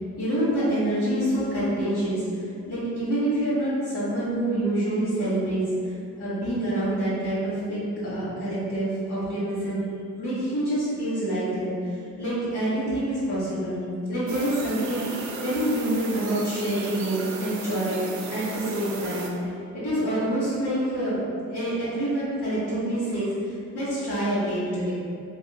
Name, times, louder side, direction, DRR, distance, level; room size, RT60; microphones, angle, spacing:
voice 1, 0.2-9.9 10.1-13.8 14.1-19.3 19.7-21.2 21.5-24.9, right 1 dB, 85° left, -12 dB, 1.4 m, -27 dB
sound 1, 14.3-19.3, right 3 dB, 70° right, 0.5 m, -35 dB
2.8 x 2.5 x 2.3 m, 2.5 s
cardioid pair, 90°, 30 cm